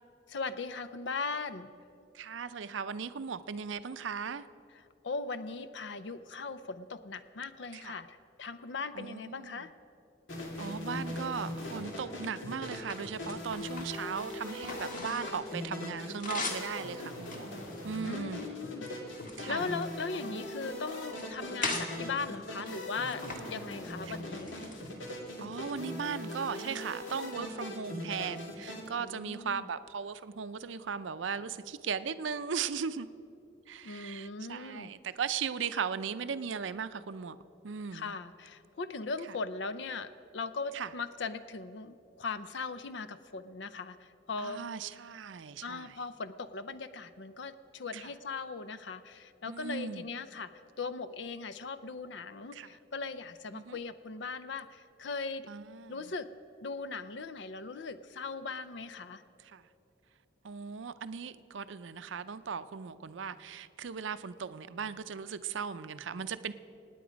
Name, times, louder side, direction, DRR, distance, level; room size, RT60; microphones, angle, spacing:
voice 1, 0.3-1.7 5.0-9.7 18.1-18.9 19.5-24.5 29.0-29.7 33.8-34.9 37.9-44.7 45.6-50.5 50.8-55.5 55.9-56.3 56.6-59.2, left 4 dB, 70° left, 0.5 m, -39 dB
voice 2, 2.1-4.5 7.7-7.9 8.9-9.7 10.6-17.5 17.8-18.4 19.4-19.7 21.6-21.8 24.1-24.2 25.4-33.1 33.7-37.4 37.6-38.1 40.7-40.9 44.4-45.9 47.9-48.0 49.5-50.0 52.5-52.7 53.5-53.8 55.5-56.0 59.4-59.6 60.4-66.5, right 6 dB, 80° right, 0.5 m, -37 dB
sound 1, 10.3-28.9, left 1 dB, 85° left, 2.5 m, -40 dB
sound 2, 10.5-11.4 12.0-15.5 15.8-16.7 17.2-18.5 19.0-20.6 21.0-21.9 22.6-23.4 23.7-24.0 24.3-25.3, left 3 dB, 45° left, 1.7 m, -41 dB
25.5 x 9.5 x 5.1 m
head